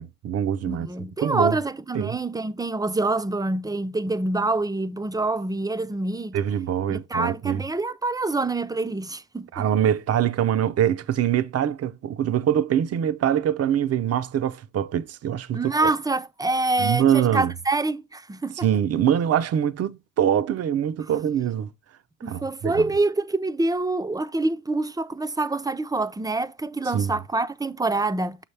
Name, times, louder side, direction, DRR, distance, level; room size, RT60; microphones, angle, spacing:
voice 1, 0.0-0.9 1.2-1.6 1.9-2.2 6.3-7.6 9.5-15.9 16.8-17.5 18.5-21.7 22.3-22.8 26.9-27.2, right 9 dB, 55° right, 0.6 m, -24 dB
voice 2, 0.6-6.3 6.9-9.7 15.5-18.7 22.2-28.4, right 2 dB, 10° right, 0.5 m, -26 dB
6.4 x 5.7 x 3.3 m
cardioid pair, 90°, 30 cm